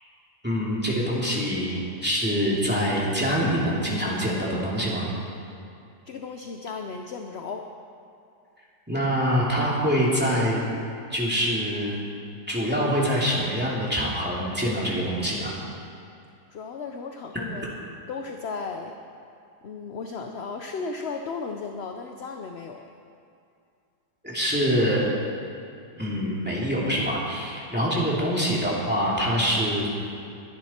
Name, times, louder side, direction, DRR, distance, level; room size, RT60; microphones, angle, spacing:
voice 1, 0.4-5.1 8.9-10.6 11.1-12.0 12.5-15.5 24.2-25.0 26.0-29.9, equal, 5° right, -6 dB, 2.7 m, -25 dB
voice 2, 6.0-7.7 16.5-17.8 18.1-18.9 19.6-22.9 27.9-28.1, left 4 dB, 55° left, 4 dB, 0.8 m, -35 dB
21.5 x 10.0 x 4.4 m, 2.5 s
omnidirectional pair, 1.7 m